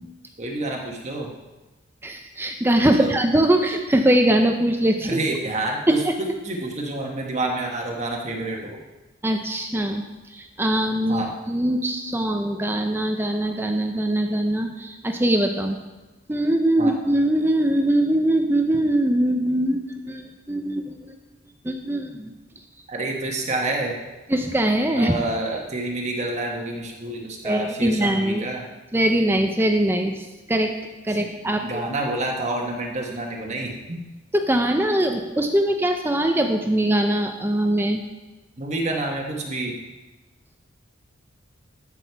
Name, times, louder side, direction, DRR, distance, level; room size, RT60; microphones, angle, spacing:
voice 1, 0.4-1.3 3.0-3.1 5.0-6.0 6.4-8.8 11.1-11.3 16.8-16.9 22.9-24.0 24.9-28.7 31.1-31.3 31.6-34.0 38.6-39.8, right 2 dB, 35° right, 0 dB, 1.2 m, -28 dB
voice 2, 2.0-5.2 5.9-6.1 9.2-10.0 10.3-15.8 16.3-21.1 21.6-22.3 24.3-25.1 27.4-28.4 28.9-30.7 31.0-31.8 34.3-38.0, right 1 dB, 10° right, 4 dB, 0.6 m, -22 dB
14.0 x 6.2 x 4.6 m, 1.1 s
head